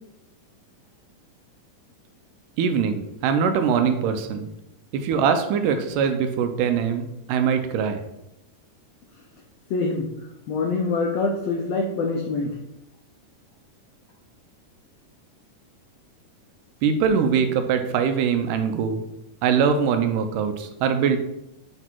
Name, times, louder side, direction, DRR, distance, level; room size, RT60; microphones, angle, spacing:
voice 1, 2.6-4.5 4.9-8.0 16.8-19.0 19.4-21.2, right 6 dB, 85° right, 7 dB, 2.2 m, -22 dB
voice 2, 9.7-10.1 10.5-12.5, left 3 dB, 85° left, 1 dB, 1.4 m, -25 dB
7.9 x 3.3 x 4.6 m, 0.86 s
omnidirectional pair, 3.8 m